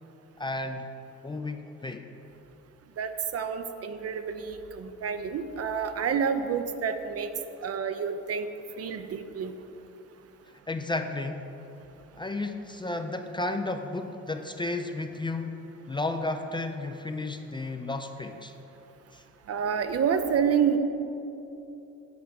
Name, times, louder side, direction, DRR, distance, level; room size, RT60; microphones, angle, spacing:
voice 1, 0.4-0.9 1.2-2.1 10.7-11.5 12.2-18.5 19.1-19.2, left 2 dB, 15° left, 6 dB, 0.4 m, -33 dB
voice 2, 3.0-7.3 7.6-8.5 8.8-9.5 19.5-20.8, right 7 dB, 55° right, 9 dB, 0.6 m, -28 dB
7.9 x 4.7 x 6.9 m, 3.0 s
cardioid pair, 90°, 30 cm